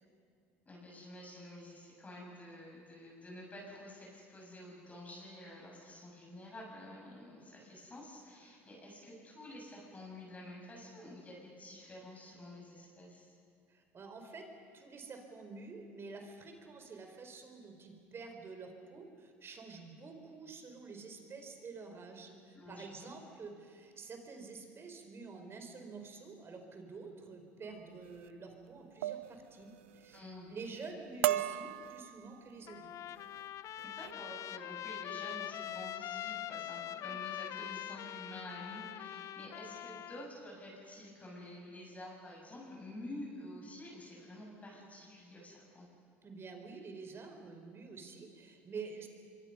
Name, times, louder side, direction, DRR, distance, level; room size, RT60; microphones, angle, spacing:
voice 1, 0.7-13.4 22.5-23.1 30.1-30.5 33.8-45.9, left 1 dB, 25° left, -2 dB, 7.2 m, -49 dB
voice 2, 13.7-14.5 14.7-33.0 37.0-37.1 46.2-49.1, right 4 dB, 40° right, 5 dB, 4.1 m, -48 dB
sound 1, 28.0-28.3 29.0-29.4 29.7-30.2 30.6-30.9 31.2-32.6 33.2-33.4 33.8-34.1, right 13 dB, 90° right, 0.5 m, -36 dB
Trumpet, 32.7-40.3, left 11 dB, 55° left, 0.7 m, -43 dB
25.0 x 23.5 x 5.6 m, 2.3 s
hypercardioid pair, 75°, 7 cm